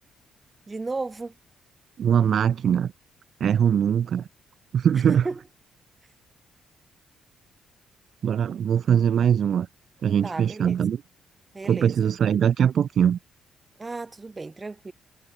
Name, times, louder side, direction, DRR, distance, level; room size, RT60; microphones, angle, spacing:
voice 1, 0.7-1.4 4.9-5.4 10.2-10.8 11.5-12.1 13.8-14.9, right 3 dB, 20° right, 3.0 m, -34 dB
voice 2, 2.0-2.9 3.4-4.3 4.7-5.3 8.2-9.7 10.0-11.0 11.6-13.2, right 8 dB, 55° right, 0.6 m, -21 dB
cardioid pair, 115°, 0 cm